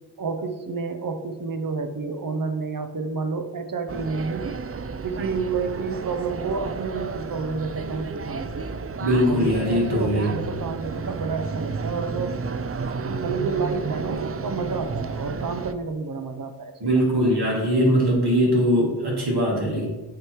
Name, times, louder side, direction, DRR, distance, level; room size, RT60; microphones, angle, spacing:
voice 1, 0.2-4.6 5.0-8.7 9.2-12.4 12.9-17.1, right 4 dB, 55° right, 7 dB, 0.8 m, -30 dB
sound 1, 3.9-15.7, right 5 dB, 35° right, 0.4 m, -32 dB
voice 2, 9.0-10.3 16.8-19.9, equal, 70° right, -3 dB, 2.1 m, -21 dB
8.3 x 3.2 x 4.6 m, 1.2 s
wide cardioid pair, 50°, 41 cm